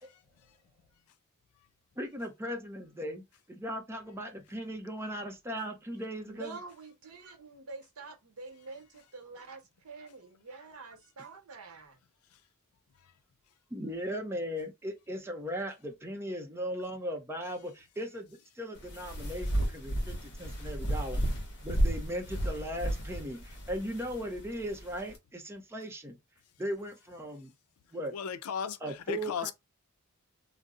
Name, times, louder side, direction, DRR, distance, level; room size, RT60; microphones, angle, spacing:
voice 1, 2.0-6.6 13.7-21.2 21.6-26.2 26.6-27.5 27.9-28.1 28.8-29.5, equal, 10° right, 0.6 m, -38 dB
voice 2, 6.3-12.0, right 3 dB, 90° right, 0.9 m, -47 dB
sound 1, 18.7-25.2, equal, 55° left, 1.0 m, -33 dB
voice 3, 28.1-29.5, left 7 dB, 90° left, 0.4 m, -35 dB
2.6 x 2.0 x 3.5 m
head